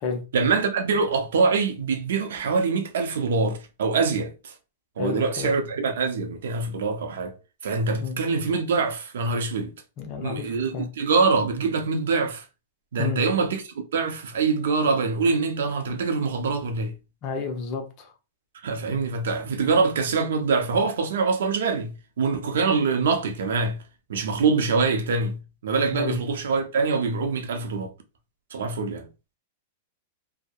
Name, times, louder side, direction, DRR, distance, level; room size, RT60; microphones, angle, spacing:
voice 1, 0.3-4.5 5.0-7.3 7.6-9.7 10.2-12.4 12.9-17.0 18.6-23.8 24.1-27.9 28.5-29.1, right 4 dB, 85° right, 0.5 m, -24 dB
voice 2, 5.0-5.5 8.0-8.2 10.0-10.9 13.0-13.2 17.2-18.1 25.9-26.2, left 5 dB, 40° left, 0.6 m, -31 dB
2.7 x 2.0 x 2.3 m
supercardioid pair, 150°, 0 cm